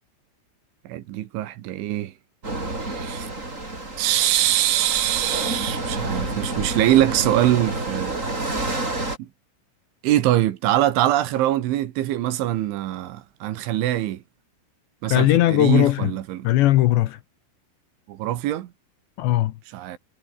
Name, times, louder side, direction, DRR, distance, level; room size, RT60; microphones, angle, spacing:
voice 1, 0.9-2.1 2.8-3.3 4.0-8.2 9.2-9.3 10.0-14.2 15.0-16.5 18.1-18.7 19.7-20.0, right 13 dB, 70° right, 3.6 m, -23 dB
sound 1, 2.4-9.2, right 2 dB, 15° right, 4.8 m, -29 dB
voice 2, 15.1-16.1 16.4-17.2 19.2-19.5, left 15 dB, 75° left, 2.9 m, -18 dB
omnidirectional pair, 6.0 m